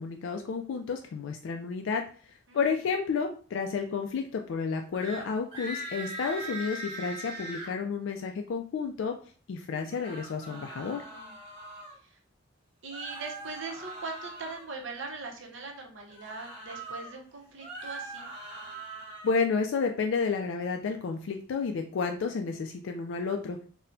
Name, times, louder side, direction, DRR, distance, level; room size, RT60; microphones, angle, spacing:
voice 1, 0.0-2.0 2.5-9.1 9.5-11.0 19.2-23.6, left 5 dB, 65° left, 4 dB, 0.3 m, -31 dB
sound 1, 4.9-5.2 5.5-7.7 9.8-11.9 12.9-14.7 16.1-17.1 17.5-19.4, right 2 dB, 25° right, 1.1 m, -41 dB
voice 2, 12.8-18.3, right 3 dB, 65° right, 1 dB, 0.7 m, -41 dB
4.1 x 2.1 x 2.6 m, 0.42 s
head